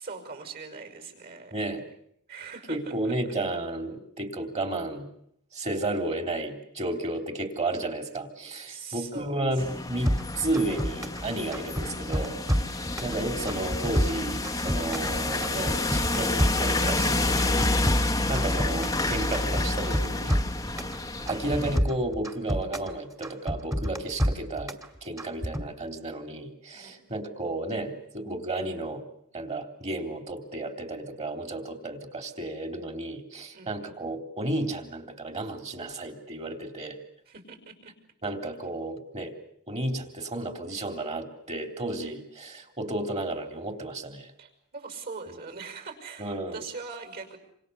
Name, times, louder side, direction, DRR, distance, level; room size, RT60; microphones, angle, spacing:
voice 1, 0.0-1.7 2.3-3.1 8.7-9.6 12.5-13.0 20.6-21.1 26.7-27.2 33.5-33.9 37.3-37.9 44.4-47.4, right 4 dB, 45° right, 7 dB, 6.0 m, -42 dB
voice 2, 1.5-1.8 2.7-5.1 5.5-12.4 12.7-20.3 21.3-24.7 25.0-29.0 29.3-37.0 38.2-39.3 39.7-44.3 45.3-45.4 46.2-46.6, right 2 dB, 30° right, 6 dB, 3.6 m, -32 dB
sound 1, 9.6-21.8, left 2 dB, 15° left, 1.1 m, -29 dB
sound 2, 10.1-11.2 11.5-13.1 13.5-15.1 15.4-17.0 17.4-19.0 19.3-21.0 21.3-22.9 23.2-24.9 25.2-25.7, equal, 15° right, 2.3 m, -28 dB
28.0 x 27.5 x 7.1 m, 0.71 s
head